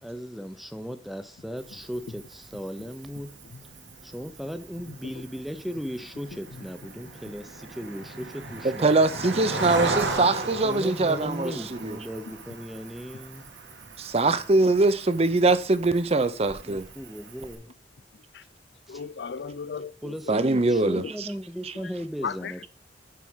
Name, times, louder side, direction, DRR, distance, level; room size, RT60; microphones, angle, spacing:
voice 1, 0.0-3.3 4.0-8.9 10.6-13.4 16.1-16.2 16.7-17.7 18.9-19.0 20.0-22.7, equal, ahead, 0.7 m, -37 dB
Cricket, 1.6-17.6, right 3 dB, 85° right, 1.6 m, -37 dB
voice 2, 8.6-12.0 14.0-16.8 20.3-21.0, right 3 dB, 35° right, 0.7 m, -22 dB
voice 3, 18.9-20.3 22.2-22.5, left 6 dB, 70° left, 0.4 m, -35 dB
7.6 x 4.9 x 5.6 m
head